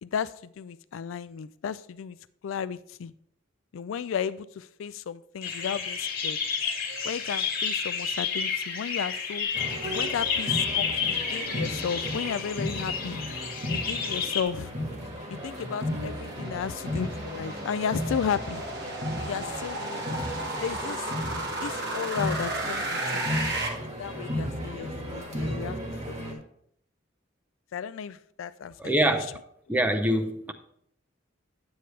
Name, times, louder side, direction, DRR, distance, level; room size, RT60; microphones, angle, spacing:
voice 1, 0.0-2.2 2.4-3.1 3.7-6.4 7.0-9.5 9.8-13.2 13.7-14.7 15.3-18.6 19.2-20.2 20.6-21.1 21.6-23.2 23.8-25.8 26.1-26.4 27.7-29.0 29.7-29.8, left 7 dB, 75° left, 0.3 m, -34 dB
sound 1, 5.4-14.4, left 6 dB, 50° left, 1.5 m, -30 dB
sound 2, 9.5-26.3, equal, 35° right, 1.6 m, -35 dB
sound 3, 14.1-23.7, right 2 dB, 55° right, 1.3 m, -35 dB
voice 2, 28.8-29.4 29.7-30.5, right 1 dB, 10° right, 0.6 m, -25 dB
9.2 x 8.1 x 3.2 m
head